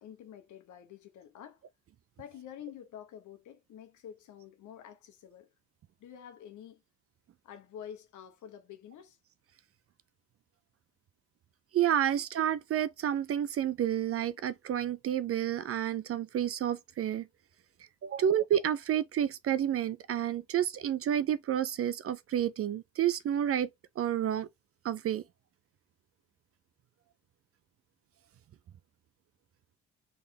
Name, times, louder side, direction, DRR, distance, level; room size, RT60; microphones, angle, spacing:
voice 1, 0.0-1.6 2.2-5.5 6.0-6.8 7.4-9.2 18.1-18.3, left 9 dB, 75° left, 1.3 m, -48 dB
voice 2, 11.7-17.3 18.0-23.7 24.0-24.5 24.8-25.2, right 10 dB, 50° right, 0.5 m, -30 dB
3.7 x 3.3 x 4.0 m
cardioid pair, 90°, 30 cm